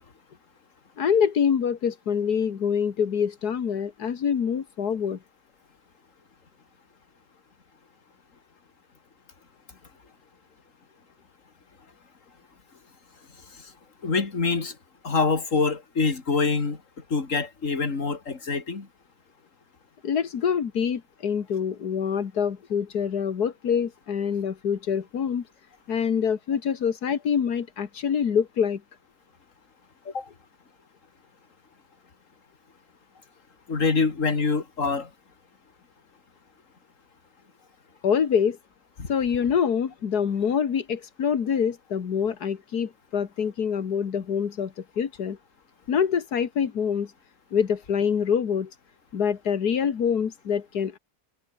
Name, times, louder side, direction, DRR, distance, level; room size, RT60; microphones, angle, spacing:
voice 1, 1.0-5.2 20.0-25.4 25.9-28.8 38.0-38.6 39.1-45.4 45.9-47.1 47.5-48.7 49.1-51.0, left 7 dB, 85° left, 2.1 m, -25 dB
voice 2, 14.0-14.7 15.0-16.8 17.1-18.9 30.1-30.3 33.7-35.1 39.0-39.1, left 4 dB, 55° left, 3.1 m, -25 dB
omnidirectional pair, 1.6 m